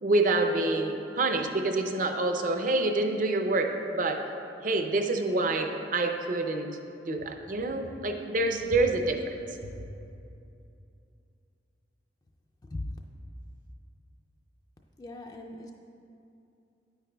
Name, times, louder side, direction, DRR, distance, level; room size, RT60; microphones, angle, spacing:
voice 1, 0.0-4.2 4.6-6.8 7.0-9.2, right 2 dB, 45° right, 5 dB, 0.5 m, -27 dB
voice 2, 15.0-15.7, left 2 dB, 20° left, 2 dB, 0.3 m, -38 dB
9.3 x 8.9 x 2.3 m, 2.6 s
head